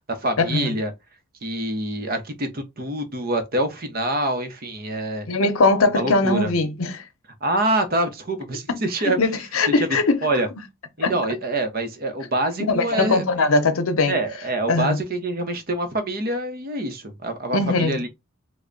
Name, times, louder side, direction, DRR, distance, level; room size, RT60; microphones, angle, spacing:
voice 1, 0.1-0.9 1.4-5.3 5.9-6.5 7.4-9.2 9.8-9.9 10.2-10.5 11.0-13.5 14.1-18.1, right 1 dB, 45° right, 0.8 m, -25 dB
voice 2, 5.3-7.0 9.1-10.2 11.0-11.1 12.7-14.1 14.7-15.0 17.5-18.0, left 3 dB, 80° left, 0.7 m, -20 dB
3.3 x 2.2 x 3.8 m
head